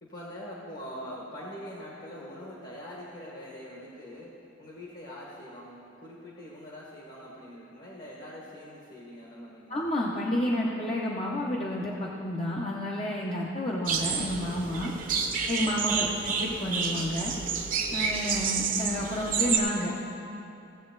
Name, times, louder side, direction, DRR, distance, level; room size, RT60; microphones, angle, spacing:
voice 1, 0.0-4.3 4.6-9.8 16.0-16.4, equal, 50° left, -5 dB, 1.6 m, -43 dB
voice 2, 9.7-14.9 15.5-17.3 17.9-19.9, left 1 dB, 30° left, -3 dB, 0.8 m, -30 dB
sound 1, 13.9-19.6, right 6 dB, 45° right, 0.9 m, -29 dB
16.5 x 7.9 x 4.0 m, 2.7 s
head